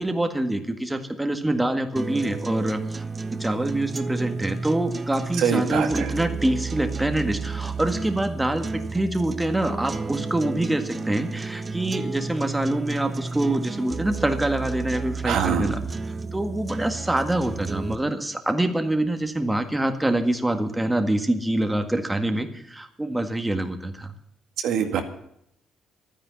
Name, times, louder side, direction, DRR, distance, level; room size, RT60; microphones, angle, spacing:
voice 1, 0.0-15.8 16.3-24.1, right 1 dB, 10° right, 6 dB, 1.8 m, -25 dB
sound 1, 2.0-18.0, right 4 dB, 30° right, 1.0 m, -32 dB
voice 2, 5.4-6.1 15.2-15.7 24.6-25.0, right 7 dB, 85° right, 5 dB, 2.0 m, -24 dB
12.5 x 9.9 x 9.7 m, 0.73 s
cardioid pair, 90°, 0 cm